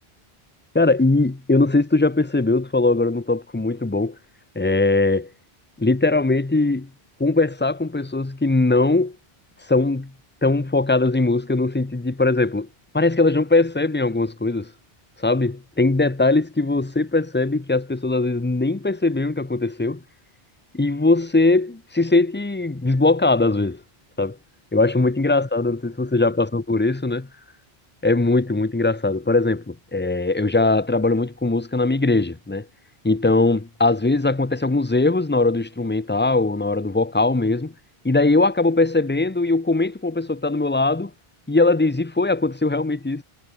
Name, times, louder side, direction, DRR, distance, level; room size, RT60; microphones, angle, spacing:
voice 1, 0.7-4.2 4.6-5.3 5.8-6.9 7.2-9.2 9.7-10.1 10.4-12.7 12.9-14.7 15.2-20.0 20.7-23.8 24.2-24.4 24.7-27.3 28.0-32.7 33.0-37.7 38.0-41.1 41.5-43.2, left 2 dB, 10° left, 0.6 m, -20 dB
omnidirectional pair, 1.0 m